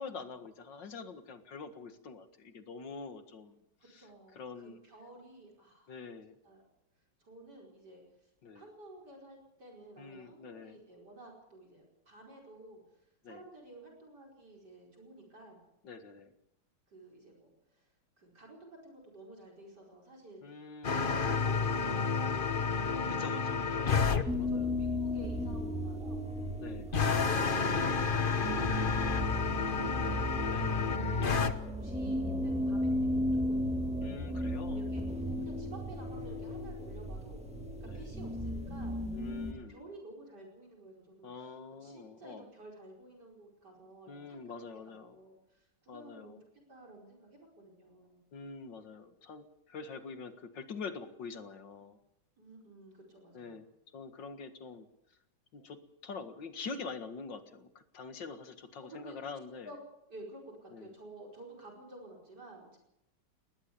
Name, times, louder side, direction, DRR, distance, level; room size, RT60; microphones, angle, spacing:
voice 1, 0.0-3.6 3.8-4.8 5.9-6.4 8.4-8.6 10.0-10.8 13.2-13.4 15.8-16.3 20.4-21.4 23.1-24.1 24.4-24.8 26.6-26.9 30.4-30.7 31.0-31.2 34.0-35.5 37.8-38.0 39.1-39.8 41.2-42.5 44.1-45.2 45.9-46.4 48.3-52.0 53.3-53.7 53.9-54.9 55.5-59.7 60.7-60.9, left 4 dB, 60° left, 9 dB, 2.3 m, -45 dB
voice 2, 3.9-6.0 6.4-6.6 7.2-8.3 8.6-15.6 16.9-17.9 18.2-20.4 20.9-23.1 24.2-26.3 28.1-30.6 31.1-34.1 34.7-37.5 37.8-39.0 39.7-44.5 44.8-46.4 46.7-48.2 52.4-53.6 58.8-59.2 59.6-59.8 60.1-62.8, right 2 dB, 50° right, 2 dB, 5.4 m, -52 dB
sound 1, 20.8-24.2 26.9-31.5, left 5 dB, 35° left, 0.9 m, -30 dB
sound 2, 24.3-39.5, left 1 dB, 5° right, 2.6 m, -35 dB
20.5 x 19.5 x 6.9 m, 0.86 s
omnidirectional pair, 2.3 m